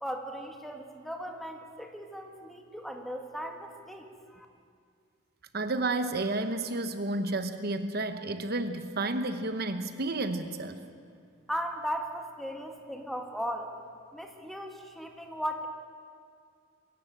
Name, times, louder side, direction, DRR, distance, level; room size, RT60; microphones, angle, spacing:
voice 1, 0.0-4.1 4.3-4.5 11.5-13.7 14.1-15.7, equal, ahead, 3 dB, 1.8 m, -37 dB
voice 2, 5.5-10.8, right 2 dB, 55° right, 9 dB, 1.0 m, -31 dB
22.0 x 17.0 x 8.7 m, 2.3 s
head